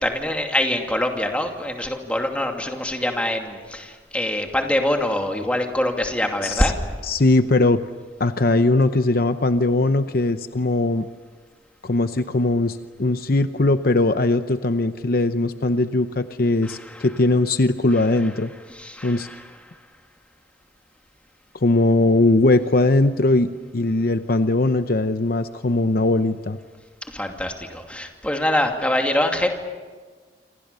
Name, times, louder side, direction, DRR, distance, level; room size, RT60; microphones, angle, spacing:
voice 1, 0.0-6.7 18.8-19.4 27.1-29.5, left 1 dB, 5° left, 3 dB, 2.6 m, -24 dB
voice 2, 7.0-7.8 8.2-11.1 11.8-18.5 19.0-19.3 21.5-26.6, left 2 dB, 55° left, 10 dB, 0.8 m, -20 dB
28.5 x 26.0 x 6.9 m, 1.5 s
head